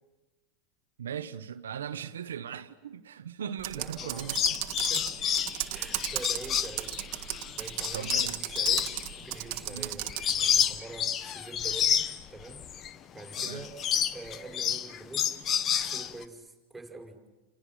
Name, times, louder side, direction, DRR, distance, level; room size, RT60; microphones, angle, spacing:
voice 1, 1.0-4.4 7.9-8.4 9.7-9.9 13.4-13.7, right 8 dB, 85° right, 1.0 m, -38 dB
Computer keyboard, 3.6-10.4, right 18 dB, 60° right, 1.6 m, -36 dB
voice 2, 3.7-5.2 5.7-13.8 14.1-15.3 15.6-17.2, right 2 dB, 5° right, 6.3 m, -46 dB
sound 1, 4.0-12.9 13.2-16.2, left 9 dB, 35° left, 1.1 m, -30 dB
29.0 x 28.0 x 6.2 m
hypercardioid pair, 105°, 0 cm